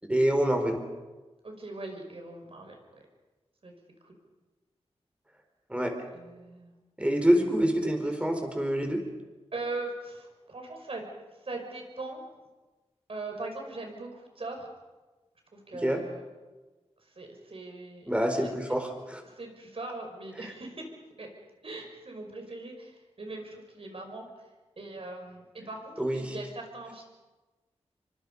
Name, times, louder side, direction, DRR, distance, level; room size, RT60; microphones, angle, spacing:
voice 1, 0.1-0.8 5.7-6.0 7.0-9.0 15.8-16.0 18.1-19.2 26.0-26.3, equal, 10° right, 4 dB, 4.4 m, -26 dB
voice 2, 1.4-2.8 3.6-3.7 4.0-4.2 6.1-6.7 9.5-11.1 11.4-12.2 13.1-14.7 15.5-16.3 17.2-18.1 18.4-18.5 19.3-20.9 21.2-21.3 21.6-24.5 24.8-27.0, right 2 dB, 60° right, 3 dB, 5.6 m, -40 dB
27.0 x 24.5 x 5.5 m, 1.2 s
wide cardioid pair, 80°, 11 cm